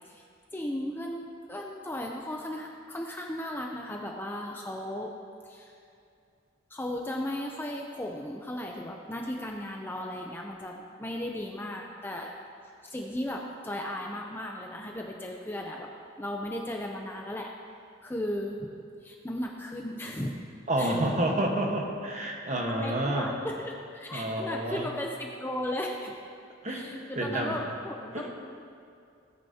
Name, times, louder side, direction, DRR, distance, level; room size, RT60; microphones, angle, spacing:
voice 1, 0.5-5.1 5.4-5.7 6.7-12.3 12.8-15.9 16.2-17.5 18.0-18.7 19.0-20.3 20.8-20.9 22.6-26.1 26.7-28.3, left 1 dB, 10° left, 0 dB, 0.5 m, -36 dB
voice 2, 20.7-23.3 24.1-24.9 26.6-27.6 28.1-28.3, right 1 dB, 35° right, 0 dB, 1.2 m, -29 dB
17.5 x 9.0 x 2.8 m, 2.4 s
head